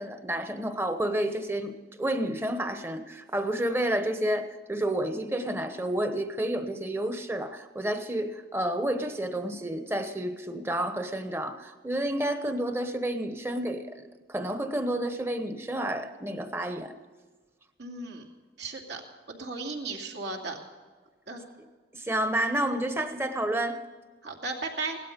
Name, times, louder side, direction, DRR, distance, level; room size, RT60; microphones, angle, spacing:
voice 1, 0.0-1.7 2.0-16.9 21.9-23.8, right 1 dB, 15° right, 8 dB, 1.0 m, -30 dB
voice 2, 17.8-18.3 18.6-19.0 19.3-20.6 21.3-21.4 24.2-25.0, right 3 dB, 75° right, 1 dB, 2.4 m, -35 dB
17.0 x 12.5 x 5.3 m, 1.4 s
head